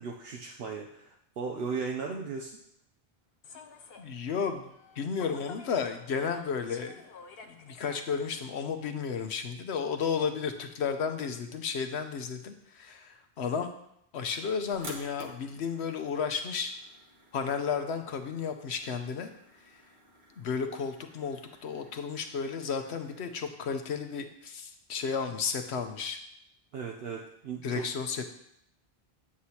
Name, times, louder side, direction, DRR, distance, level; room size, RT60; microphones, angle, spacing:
voice 1, 0.0-2.6 26.7-27.9, right 5 dB, 70° right, 0 dB, 0.9 m, -36 dB
Human voice / Subway metro underground, 3.4-9.1, left 5 dB, 70° left, 0.9 m, -51 dB
voice 2, 4.0-7.0 7.5-13.7 14.1-16.7 17.3-19.3 20.4-26.2 27.6-28.3, left 6 dB, 85° left, 7 dB, 1.1 m, -33 dB
sound 1, 14.7-23.5, right 2 dB, 50° right, 1.3 m, -52 dB
8.5 x 7.9 x 2.9 m, 0.75 s
omnidirectional pair, 1.1 m